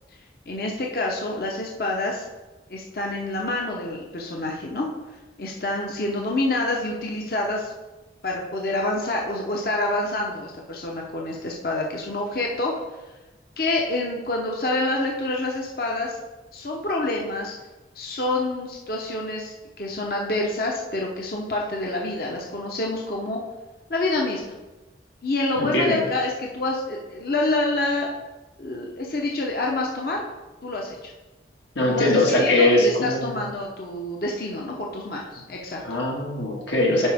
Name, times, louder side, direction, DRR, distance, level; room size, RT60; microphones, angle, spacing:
voice 1, 0.5-2.3 2.7-4.9 5.4-7.7 8.2-12.7 13.6-16.2 16.5-17.5 18.0-23.4 23.9-24.4 25.2-28.1 28.6-30.2 30.6-31.1 31.9-35.8, left 2 dB, 55° left, -1 dB, 0.9 m, -27 dB
voice 2, 25.6-26.0 31.8-33.4 35.8-37.1, left 1 dB, 80° left, -3 dB, 2.1 m, -21 dB
9.8 x 4.9 x 3.5 m, 1.1 s
head